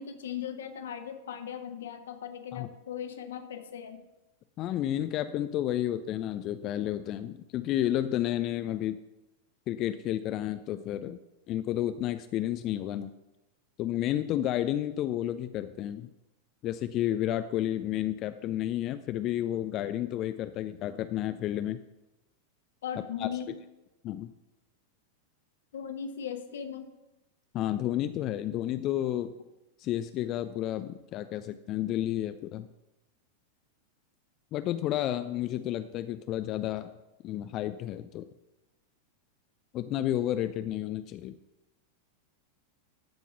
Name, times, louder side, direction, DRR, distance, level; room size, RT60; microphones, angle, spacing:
voice 1, 0.0-4.0 22.8-23.5 25.7-26.9, left 8 dB, 60° left, 7 dB, 1.2 m, -38 dB
voice 2, 4.6-9.0 9.7-11.2 11.5-13.1 13.8-16.1 16.6-21.8 23.2-23.6 24.0-24.3 27.5-29.3 29.8-32.7 34.5-36.9 37.2-38.2 39.7-41.3, left 12 dB, 35° left, 10 dB, 0.4 m, -31 dB
13.0 x 5.3 x 5.9 m, 0.97 s
figure-of-eight pair, 90°, 0 cm